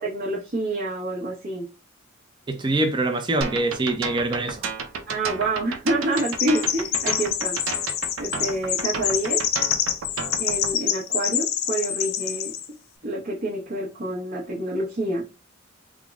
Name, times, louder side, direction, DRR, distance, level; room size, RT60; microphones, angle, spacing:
voice 1, 0.0-1.7 5.1-7.6 8.2-9.4 10.4-12.5 13.0-15.2, right 1 dB, 50° right, 0.9 m, -27 dB
voice 2, 2.5-4.7, right 2 dB, 20° right, 0.4 m, -24 dB
sound 1, 3.4-10.7, right 4 dB, 75° right, 0.6 m, -32 dB
Chirp tweet, 6.1-12.7, left 9 dB, 75° left, 0.5 m, -26 dB
3.5 x 2.0 x 3.5 m
head